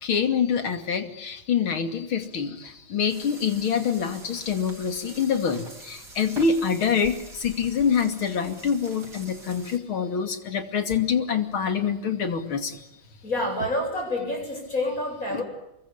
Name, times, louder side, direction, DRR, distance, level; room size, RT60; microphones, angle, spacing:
voice 1, 0.0-12.8 15.3-15.4, left 6 dB, 80° left, 8 dB, 3.4 m, -26 dB
sound 1, 3.1-9.8, right 3 dB, 50° right, 4.6 m, -45 dB
voice 2, 13.2-15.4, left 1 dB, 40° left, 3 dB, 8.7 m, -28 dB
28.0 x 23.5 x 8.6 m, 0.87 s
omnidirectional pair, 2.2 m